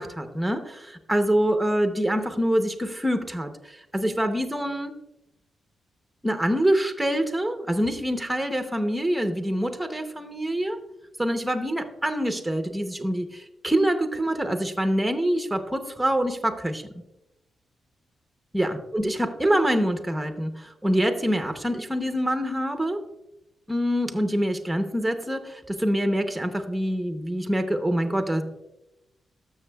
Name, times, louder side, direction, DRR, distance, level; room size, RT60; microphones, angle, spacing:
voice 1, 0.0-4.9 6.2-10.8 11.2-16.8 18.5-23.0 23.7-28.4, equal, 5° right, 7 dB, 0.8 m, -25 dB
12.5 x 6.8 x 2.3 m, 0.92 s
wide cardioid pair, 125°, 0 cm